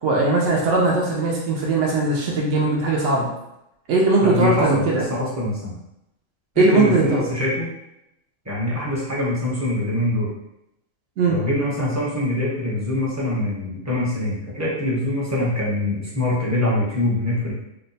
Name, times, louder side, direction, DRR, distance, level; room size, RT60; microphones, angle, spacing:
voice 1, 0.0-3.3 3.9-5.0 6.6-7.2 11.2-11.4, right 3 dB, 70° right, -3 dB, 0.9 m, -19 dB
voice 2, 4.2-5.8 6.6-7.7 8.5-10.3 11.3-17.5, left 1 dB, 15° right, -6 dB, 0.7 m, -24 dB
2.8 x 2.1 x 4.0 m, 0.84 s
omnidirectional pair, 1.4 m